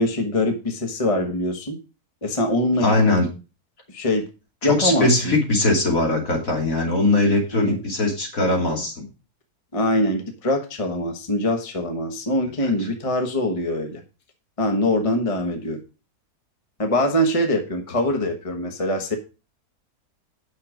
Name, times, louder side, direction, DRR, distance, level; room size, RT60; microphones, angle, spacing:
voice 1, 0.0-1.8 2.2-2.9 3.9-4.3 4.6-5.3 7.5-7.8 9.7-14.0 14.6-15.8 16.8-19.2, left 1 dB, 25° left, 4 dB, 1.2 m, -23 dB
voice 2, 2.8-3.3 4.6-9.0 12.6-12.9, left 2 dB, 60° left, 0 dB, 3.1 m, -21 dB
9.4 x 6.5 x 5.0 m, 0.32 s
omnidirectional pair, 1.6 m